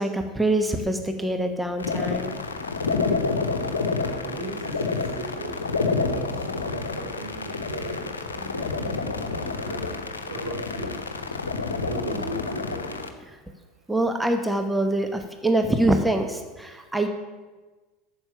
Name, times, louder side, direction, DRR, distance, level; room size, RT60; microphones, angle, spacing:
voice 1, 0.0-2.4 13.9-17.1, right 1 dB, 5° right, 5 dB, 1.0 m, -24 dB
sound 1, 1.8-13.1, left 4 dB, 80° left, 0.9 m, -29 dB
voice 2, 4.2-4.9 5.2-5.5 6.1-6.4 6.6-9.0 9.4-9.8 10.2-11.0 11.8-13.0, right 2 dB, 70° right, -1 dB, 3.3 m, -36 dB
9.0 x 7.3 x 8.9 m, 1.3 s
figure-of-eight pair, 75°, 0 cm